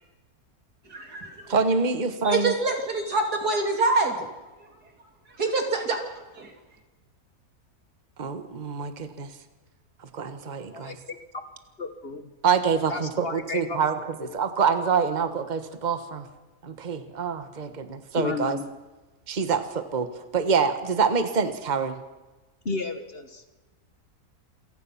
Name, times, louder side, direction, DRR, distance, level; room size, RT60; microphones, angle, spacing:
voice 1, 0.9-1.5 2.2-4.3 4.6-4.7 5.3-6.0 6.3-6.5, right 3 dB, 80° right, 3 dB, 3.7 m, -26 dB
voice 2, 1.5-2.5 8.2-9.3 10.1-11.0 12.4-16.3 16.6-18.6 19.3-22.0, right 5 dB, 30° right, 9 dB, 1.4 m, -26 dB
voice 3, 10.7-11.2 11.8-12.3 12.9-13.8 14.2-14.3 18.1-18.8 22.6-23.4, left 4 dB, 40° left, 8 dB, 1.5 m, -33 dB
27.5 x 17.0 x 5.9 m, 1.2 s
omnidirectional pair, 1.6 m